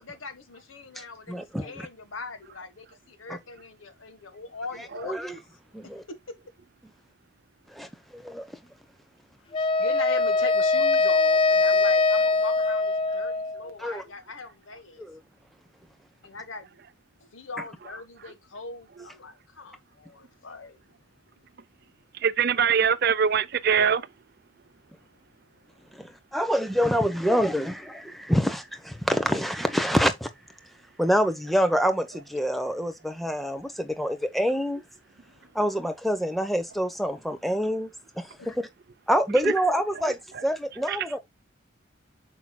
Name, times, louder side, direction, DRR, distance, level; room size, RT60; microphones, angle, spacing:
voice 1, 0.0-5.2 6.1-6.2 9.6-15.0 16.2-16.7 17.3-20.8 35.3-35.4 38.4-38.6, left 4 dB, 85° left, 1.5 m, -40 dB
voice 2, 0.9-1.9 3.3-3.4 5.0-5.4 5.7-6.0 7.7-8.6 13.8-14.0 15.0-15.2 25.9-30.3 31.0-34.8 35.5-37.9 38.1-38.7 39.1-41.2, equal, ahead, 0.9 m, -26 dB
Wind instrument woodwind instrument, 9.5-13.7, left 3 dB, 25° left, 0.4 m, -22 dB
voice 3, 22.2-24.0 39.4-39.5 40.3-40.4 40.9-41.0, right 7 dB, 50° right, 0.6 m, -22 dB
8.8 x 6.1 x 2.3 m
head